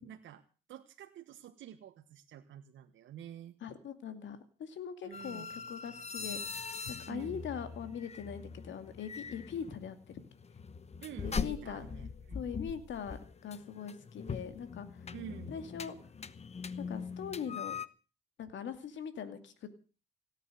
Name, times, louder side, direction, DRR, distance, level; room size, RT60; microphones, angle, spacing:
voice 1, 0.0-0.4 0.7-3.6 5.0-5.5 7.1-7.4 11.0-12.4 15.1-15.5, right 10 dB, 75° right, 4 dB, 1.4 m, -48 dB
voice 2, 3.6-6.4 6.9-10.0 11.2-11.9 12.3-15.1 15.5-16.0 16.8-17.7 18.4-19.8, left 7 dB, 70° left, 9 dB, 2.5 m, -41 dB
sound 1, 5.1-17.9, left 5 dB, 35° left, 1.0 m, -42 dB
17.5 x 9.2 x 7.9 m, 0.37 s
cardioid pair, 90°, 20 cm